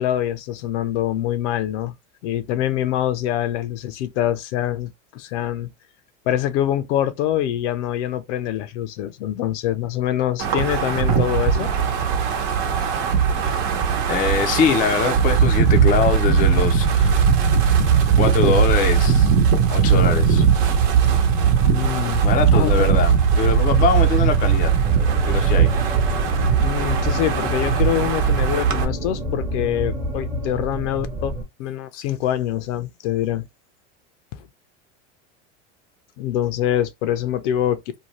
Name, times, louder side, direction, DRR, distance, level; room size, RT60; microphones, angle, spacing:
voice 1, 0.0-1.9 2.2-5.7 6.3-11.7 21.6-22.2 22.5-22.9 26.6-31.3 31.6-33.5 34.4-34.5 36.2-37.8, left 11 dB, 70° left, 0.6 m, -24 dB
Wind, 10.4-28.9, right 7 dB, 55° right, 0.9 m, -19 dB
voice 2, 14.1-17.2 18.2-19.3 19.7-20.5 22.2-24.7 25.3-25.7, left 6 dB, 25° left, 0.4 m, -22 dB
sound 1, 24.8-31.4, equal, 15° right, 0.8 m, -28 dB
2.7 x 2.2 x 3.0 m
supercardioid pair, 120°, 37 cm